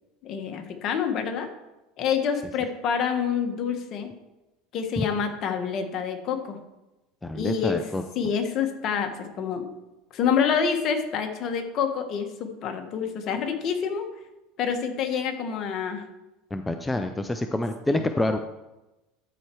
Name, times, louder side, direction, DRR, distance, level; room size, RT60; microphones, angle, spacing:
voice 1, 0.2-1.5 2.0-4.1 4.7-6.6 7.3-7.8 8.1-9.7 10.1-14.1 14.6-16.0 17.9-18.0, left 7 dB, 50° left, 5 dB, 1.4 m, -27 dB
voice 2, 7.2-8.0 16.5-18.4, left 2 dB, 10° left, 7 dB, 0.5 m, -27 dB
12.5 x 4.4 x 4.7 m, 1.0 s
supercardioid pair, 105°, 0 cm